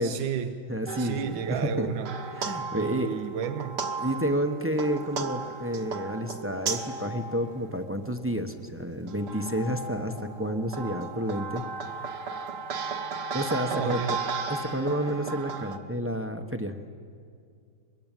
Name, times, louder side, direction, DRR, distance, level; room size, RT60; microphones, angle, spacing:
voice 1, 0.0-0.6 1.0-2.2 2.7-3.8 13.7-14.3, right 8 dB, 75° right, 7 dB, 1.6 m, -32 dB
voice 2, 0.7-1.9 2.4-3.1 4.0-10.1 10.4-11.6 13.3-14.2 14.5-16.8, equal, 10° right, 6 dB, 0.8 m, -30 dB
sound 1, 0.9-8.3 8.9-15.8, right 4 dB, 60° right, 1.9 m, -35 dB
24.0 x 22.5 x 9.2 m, 2.3 s
omnidirectional pair, 2.1 m